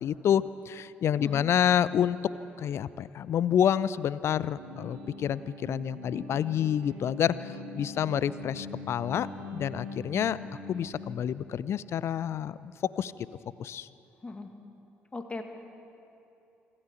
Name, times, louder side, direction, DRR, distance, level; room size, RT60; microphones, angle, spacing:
voice 1, 0.0-2.2 2.6-9.3 9.5-10.4 10.7-13.1 13.6-13.9, left 9 dB, 45° left, 18 dB, 0.6 m, -28 dB
sound 1, 4.6-11.1, left 1 dB, 65° right, 2.5 m, -42 dB
voice 2, 15.1-15.4, left 3 dB, 20° left, 5 dB, 2.1 m, -38 dB
26.0 x 14.0 x 8.3 m, 2.9 s
figure-of-eight pair, 45°, 6 cm